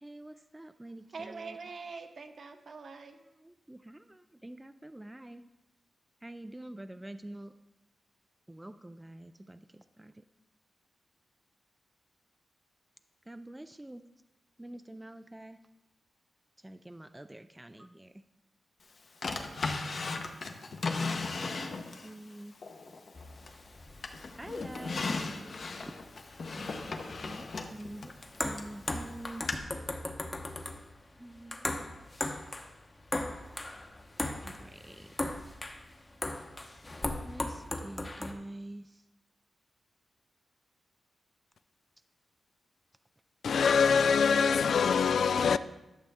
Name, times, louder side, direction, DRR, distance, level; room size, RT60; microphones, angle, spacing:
voice 1, 0.0-1.6 3.4-5.4 6.2-7.5 8.5-10.2 13.3-14.0 14.6-15.6 16.6-18.1 22.0-22.6 24.4-25.1 26.6-28.1 28.4-29.5 31.2-31.8 34.4-35.1 37.2-38.9, right 1 dB, 10° right, 0.3 m, -46 dB
voice 2, 1.1-3.2, right 4 dB, 55° right, 0.9 m, -44 dB
Drawer open or close, 19.2-22.1 22.6-23.7 24.0-28.7 29.5-29.6, left 3 dB, 55° left, 0.9 m, -36 dB
sound 1, 23.2-38.3, left 2 dB, 25° left, 0.8 m, -39 dB
voice 3, 43.4-45.6, left 6 dB, 75° left, 0.3 m, -24 dB
11.5 x 6.7 x 3.5 m
wide cardioid pair, 110°, 0 cm